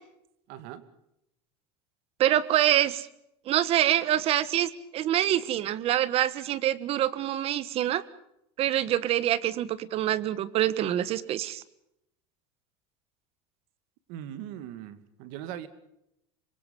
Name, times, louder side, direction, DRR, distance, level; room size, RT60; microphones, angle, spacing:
voice 1, 0.5-0.8 14.1-15.7, right 11 dB, 60° right, 12 dB, 2.3 m, -40 dB
voice 2, 2.2-3.1 3.5-8.0 8.6-11.6, right 12 dB, 40° right, 17 dB, 1.4 m, -25 dB
26.5 x 23.5 x 5.3 m, 0.80 s
supercardioid pair, 145°, 15 cm